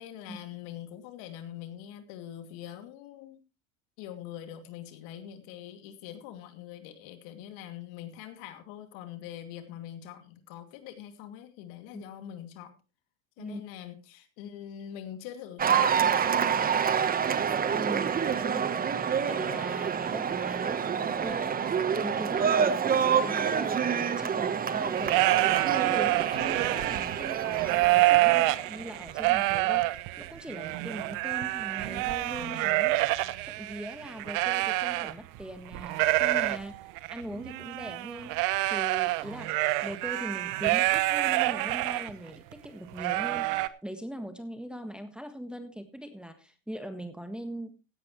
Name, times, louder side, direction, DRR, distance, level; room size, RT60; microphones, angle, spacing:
voice 1, 0.0-3.4 4.0-12.7 13.4-17.1, left 10 dB, 60° left, 8 dB, 2.5 m, -44 dB
Cheering / Applause, 15.6-29.0, right 7 dB, 20° right, 1.1 m, -28 dB
voice 2, 17.7-33.1 33.4-36.8 37.1-38.4 38.7-39.6 39.8-47.7, equal, ahead, 7 dB, 1.5 m, -41 dB
sound 1, 24.9-35.4 35.7-42.1 42.5-42.6 43.0-43.7, right 19 dB, 50° right, 0.9 m, -27 dB
16.0 x 10.5 x 3.1 m, 0.29 s
supercardioid pair, 110°, 40 cm